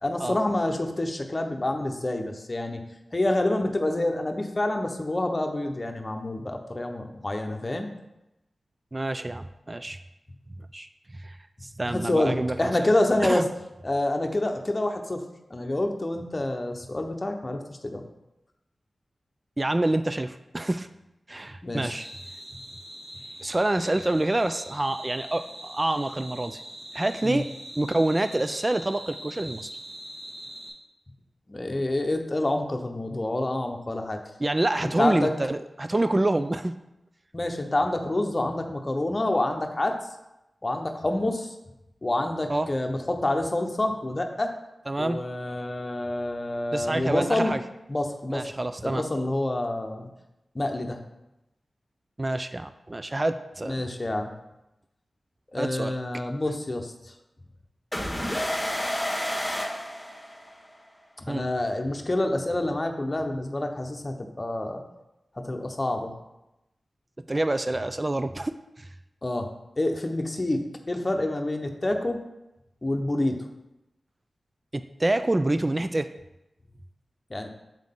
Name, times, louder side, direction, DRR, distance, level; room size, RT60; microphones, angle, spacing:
voice 1, 0.0-2.8 3.1-7.9 11.9-13.4 13.8-15.2 15.5-18.0 21.6-21.9 27.2-27.4 31.5-34.2 35.0-35.3 37.3-40.0 40.6-41.5 42.0-44.5 45.0-47.5 47.9-48.5 48.8-50.1 50.5-51.0 53.7-54.3 55.5-56.9 61.2-64.8 65.4-66.1 69.2-69.5 69.8-70.6 70.9-72.2 72.8-73.3 77.3-77.5, left 1 dB, 35° left, 4 dB, 0.8 m, -27 dB
voice 2, 8.9-10.0 10.7-11.4 11.6-12.7 13.2-13.5 19.6-20.9 21.3-22.1 23.4-26.6 26.9-27.5 27.8-29.7 34.4-36.8 42.5-42.7 44.9-45.2 46.7-47.6 48.3-49.0 52.2-53.8 55.6-55.9 61.3-61.5 67.3-68.9 74.7-76.1, right 2 dB, 30° right, 10 dB, 0.3 m, -27 dB
sound 1, 21.9-30.7, right 1 dB, 90° right, 1.7 m, -42 dB
sound 2, 57.9-60.7, equal, 15° left, 1.6 m, -30 dB
7.3 x 3.8 x 3.7 m, 0.90 s
cardioid pair, 45°, 0 cm